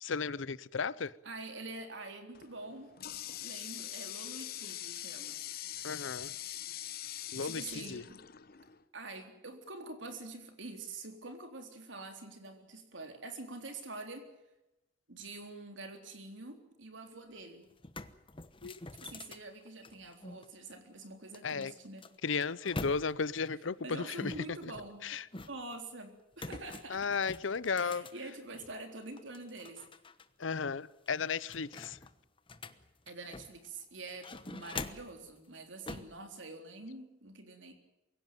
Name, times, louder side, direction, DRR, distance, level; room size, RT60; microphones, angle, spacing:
voice 1, 0.0-1.1 5.8-6.3 7.3-8.0 18.6-18.7 21.4-21.7 22.2-24.3 24.6-24.7 25.0-25.2 26.9-28.1 30.4-32.0, left 5 dB, 75° left, 0.7 m, -34 dB
voice 2, 1.2-2.9 3.4-5.4 7.3-8.2 8.9-14.3 15.1-17.7 19.0-22.1 23.8-25.0 25.4-27.1 27.8-29.8 33.1-37.7, right 2 dB, 70° right, 3.8 m, -46 dB
Water tap faucet, 2.3-8.8, left 12 dB, 50° left, 1.0 m, -43 dB
sound 1, 17.3-17.4 17.7-20.5 21.3-23.4 24.2-25.8 26.3-28.8 29.2-30.3 30.6-30.7 31.1-33.7 34.1-35.2 35.9-36.2, left 3 dB, 25° left, 1.1 m, -45 dB
24.0 x 16.5 x 9.3 m
head